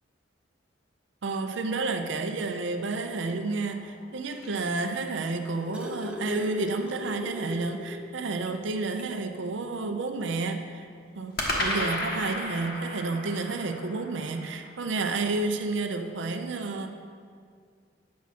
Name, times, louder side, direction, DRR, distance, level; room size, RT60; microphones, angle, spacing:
voice 1, 1.2-10.9 11.2-11.3 11.6-16.9, right 3 dB, 70° right, 6 dB, 0.6 m, -30 dB
sound 1, 3.7-5.6 11.4-15.6, left 1 dB, 50° left, 1.1 m, -35 dB
sound 2, 5.1-8.1 8.5-8.6 9.0-9.2 10.3-10.4, left 2 dB, 5° right, 0.6 m, -37 dB
8.3 x 6.1 x 4.2 m, 2.1 s
head